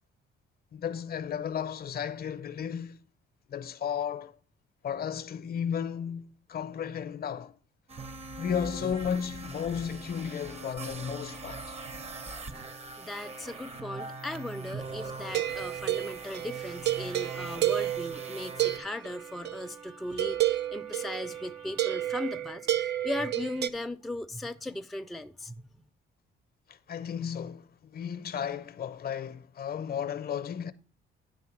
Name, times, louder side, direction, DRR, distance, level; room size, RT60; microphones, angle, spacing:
voice 1, 0.7-3.0 3.5-4.3 4.8-7.5 8.4-11.8 26.7-27.7 27.9-30.7, left 8 dB, 50° left, 0.6 m, -34 dB
sound 1, 7.9-18.8, right 3 dB, 35° right, 0.7 m, -42 dB
Wind instrument woodwind instrument, 10.4-22.5, right 3 dB, 85° right, 1.0 m, -53 dB
voice 2, 13.0-25.6, left 1 dB, ahead, 0.4 m, -37 dB
sound 2, 15.3-19.7 20.2-23.7, right 14 dB, 60° right, 0.4 m, -31 dB
9.7 x 3.5 x 5.8 m
cardioid pair, 90°, 20 cm